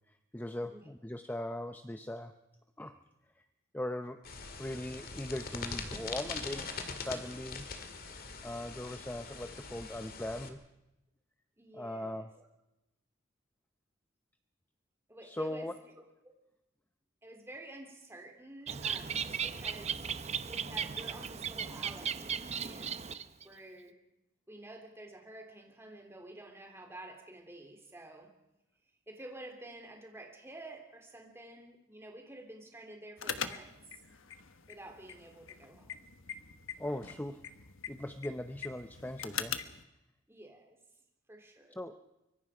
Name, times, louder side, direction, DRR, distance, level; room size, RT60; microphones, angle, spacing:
voice 1, 0.1-2.3 2.8-2.9 3.4-3.5 3.7-4.2 4.6-7.7 8.4-10.6 11.7-12.3 15.2-15.7 36.8-37.4 37.9-39.6 41.8-42.0, left 1 dB, 10° left, 8 dB, 0.7 m, -39 dB
voice 2, 0.6-0.9 11.6-12.5 15.1-15.7 16.0-16.3 17.2-20.0 20.4-23.0 23.4-24.0 24.5-28.3 29.1-33.7 34.7-36.1 40.3-40.8 41.3-41.8, right 1 dB, 10° right, 2 dB, 3.4 m, -50 dB
sound 1, 4.2-10.5, left 4 dB, 45° left, 2.2 m, -42 dB
Bird, 18.7-23.4, right 7 dB, 30° right, 0.7 m, -36 dB
sound 2, 33.2-39.8, left 8 dB, 70° left, 1.3 m, -43 dB
24.5 x 23.5 x 5.0 m, 0.93 s
head